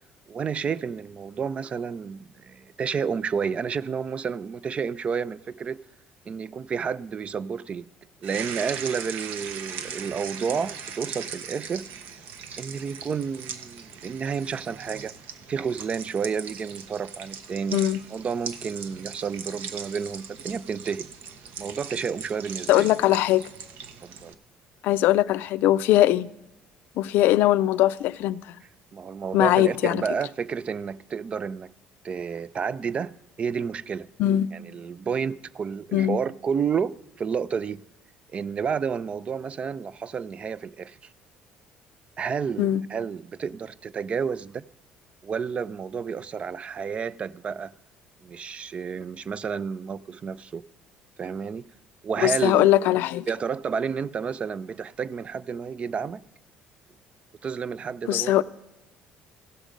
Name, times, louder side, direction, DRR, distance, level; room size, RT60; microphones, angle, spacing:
voice 1, 0.3-5.8 6.3-7.9 8.2-11.9 12.6-15.1 15.5-17.8 18.1-21.1 21.6-22.9 24.0-24.3 28.9-31.7 32.0-34.1 34.5-37.8 38.3-41.0 42.2-44.6 45.2-47.7 48.2-50.6 51.2-51.7 52.0-52.7 53.3-56.2 57.4-58.4, right 6 dB, 35° right, 0.3 m, -30 dB
sound 1, 8.2-24.3, right 7 dB, 70° right, 0.8 m, -39 dB
voice 2, 22.7-23.4 24.8-26.3 27.0-28.4 29.3-30.0 34.2-34.5 35.9-36.2 42.6-42.8 52.2-53.3 58.1-58.4, left 14 dB, 75° left, 0.3 m, -21 dB
16.0 x 6.2 x 5.1 m
cardioid pair, 100°, 3 cm